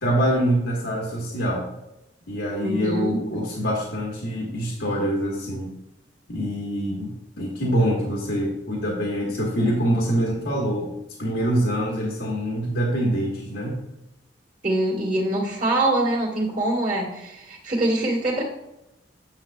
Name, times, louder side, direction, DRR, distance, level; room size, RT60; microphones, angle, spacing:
voice 1, 0.0-1.7 2.3-5.7 6.3-10.9 11.2-13.7, equal, 80° left, -3 dB, 1.5 m, -25 dB
voice 2, 2.6-3.2 14.6-18.4, right 1 dB, 40° right, -8 dB, 1.8 m, -24 dB
9.0 x 6.5 x 2.3 m, 0.91 s
head